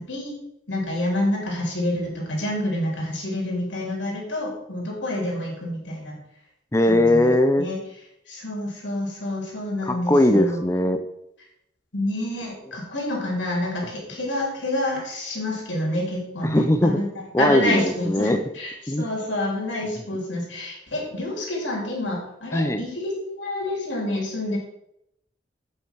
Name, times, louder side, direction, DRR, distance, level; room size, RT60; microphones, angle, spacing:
voice 1, 0.7-6.2 6.9-7.8 8.3-10.6 11.9-17.0 17.4-24.6, left 1 dB, 90° left, -2 dB, 3.2 m, -28 dB
voice 2, 6.7-7.7 9.8-11.0 16.4-17.0 17.3-18.4 18.9-19.1 22.5-22.8, left 1 dB, 15° left, 9 dB, 0.5 m, -20 dB
8.1 x 5.5 x 4.5 m, 0.79 s
head